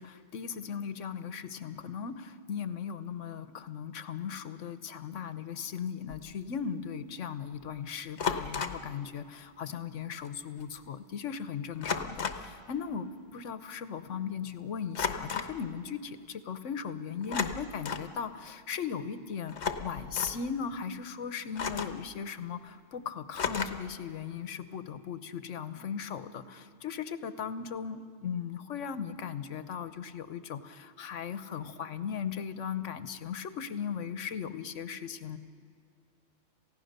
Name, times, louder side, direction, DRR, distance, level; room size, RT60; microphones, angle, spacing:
voice 1, 0.0-35.4, left 7 dB, 85° left, 12 dB, 1.3 m, -38 dB
sound 1, 6.1-6.3 8.2-8.9 10.2-10.3 10.6-10.9 11.8-12.5 14.9-15.6 17.2-18.1 19.5-20.4 21.5-22.1 23.3-23.9, left 6 dB, 65° left, 1.4 m, -34 dB
28.0 x 16.0 x 6.7 m, 2.4 s
omnidirectional pair, 1.2 m